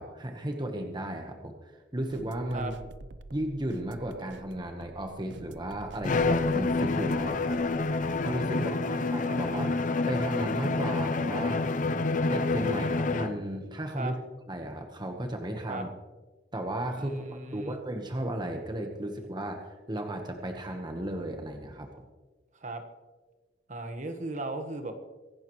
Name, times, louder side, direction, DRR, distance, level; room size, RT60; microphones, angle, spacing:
voice 1, 0.0-2.7 3.3-7.6 8.2-9.7 10.1-11.6 12.3-14.2 14.5-15.9 16.5-22.1, right 1 dB, 25° right, 4 dB, 1.2 m, -34 dB
sound 1, 2.1-8.4, right 2 dB, 90° right, 0.7 m, -48 dB
Bowed string instrument, 6.0-13.4, left 3 dB, 45° left, 0.5 m, -28 dB
voice 2, 8.5-9.8 14.0-14.1 15.7-15.8 17.0-17.8 22.6-22.8 23.7-24.9, right 2 dB, 45° right, 6 dB, 1.3 m, -37 dB
24.0 x 11.5 x 3.1 m, 1.3 s
head